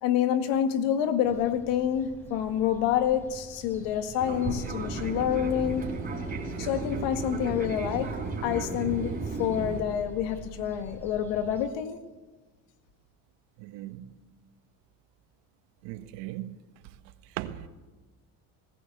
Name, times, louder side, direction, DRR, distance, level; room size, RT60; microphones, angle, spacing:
voice 1, 0.0-5.9 6.6-12.0, left 9 dB, 85° left, 1.9 m, -28 dB
sound 1, 1.2-11.7, equal, 5° left, 5.0 m, -45 dB
Fixed-wing aircraft airplane, 4.2-9.8, right 4 dB, 20° right, 4.9 m, -34 dB
voice 2, 13.6-14.1 15.8-16.6 17.3-17.7, right 14 dB, 90° right, 1.4 m, -38 dB
19.5 x 16.5 x 8.0 m
cardioid pair, 140°, 41 cm